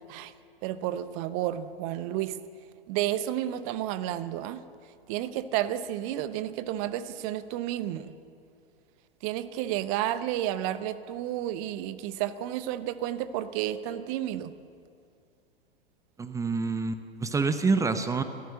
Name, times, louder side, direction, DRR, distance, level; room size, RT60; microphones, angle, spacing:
voice 1, 0.6-2.4 2.9-4.6 5.1-8.1 9.2-14.5, right 12 dB, 35° right, 14 dB, 1.0 m, -31 dB
voice 2, 16.2-18.2, right 4 dB, 10° right, 10 dB, 0.9 m, -27 dB
28.0 x 14.0 x 7.5 m, 2.4 s
figure-of-eight pair, 100°, 30 cm